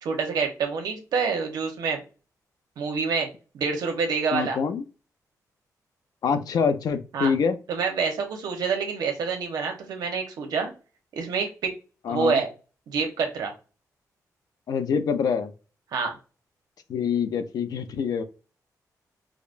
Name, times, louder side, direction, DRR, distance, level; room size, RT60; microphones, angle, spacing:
voice 1, 0.0-2.0 2.8-3.3 3.5-4.6 7.1-7.3 7.7-10.7 11.2-11.7 12.1-12.5 12.9-13.5 15.9-16.2, right 5 dB, 85° right, 4 dB, 0.9 m, -27 dB
voice 2, 4.3-4.8 6.2-7.6 12.0-12.4 14.7-15.5 16.9-18.2, left 6 dB, 75° left, 9 dB, 0.5 m, -25 dB
4.9 x 2.1 x 2.5 m, 0.33 s
cardioid pair, 110°, 7 cm